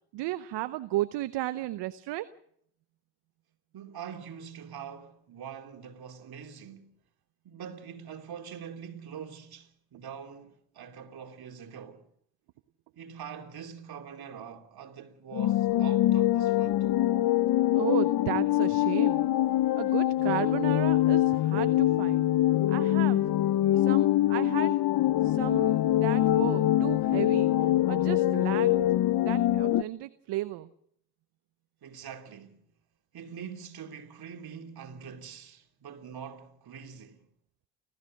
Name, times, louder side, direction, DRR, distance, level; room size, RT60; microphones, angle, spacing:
voice 1, 0.1-2.3 17.7-19.3 19.8-22.3 22.7-23.2 23.8-24.8 25.2-27.5 27.9-28.8 29.2-30.7, right 15 dB, 75° right, 0.9 m, -34 dB
voice 2, 3.7-6.9 7.4-12.0 13.0-16.9 31.8-32.6 33.1-37.2, right 7 dB, 60° right, 3.1 m, -44 dB
sound 1, 15.3-29.8, left 14 dB, 55° left, 0.7 m, -24 dB
29.5 x 14.5 x 6.5 m
supercardioid pair, 55°, 42 cm